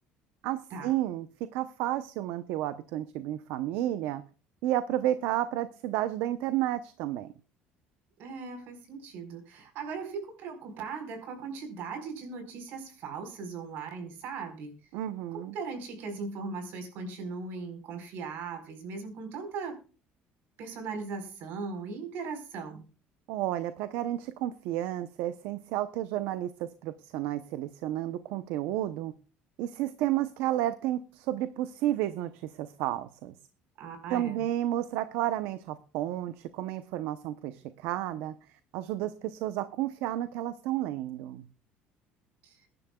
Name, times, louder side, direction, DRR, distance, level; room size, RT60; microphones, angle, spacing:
voice 1, 0.4-1.3 1.5-4.2 4.6-7.3 14.9-15.5 23.3-29.1 29.6-33.3 34.1-38.4 38.7-41.4, right 13 dB, 75° right, 12 dB, 0.8 m, -31 dB
voice 2, 8.2-14.7 15.3-19.8 20.6-22.9 33.8-34.5 42.4-42.6, right 4 dB, 60° right, 5 dB, 4.6 m, -39 dB
22.0 x 11.0 x 2.3 m, 0.37 s
cardioid pair, 170°, 4 cm